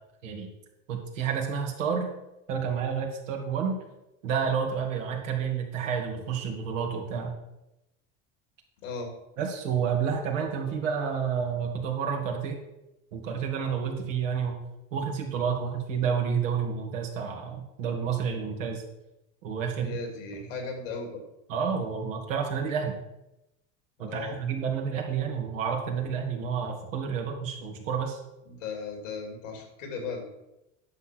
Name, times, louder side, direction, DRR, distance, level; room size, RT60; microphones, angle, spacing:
voice 1, 0.9-2.1 2.5-3.8 4.2-7.3 9.4-12.6 13.1-14.6 14.9-18.8 19.4-20.0 21.5-23.0 24.0-28.2, right 6 dB, 85° right, 1 dB, 2.4 m, -30 dB
voice 2, 8.8-9.1 19.8-21.2 24.0-24.4 28.5-30.2, left 4 dB, 85° left, 3 dB, 3.1 m, -36 dB
10.5 x 6.6 x 6.1 m, 0.92 s
hypercardioid pair, 90°, 37 cm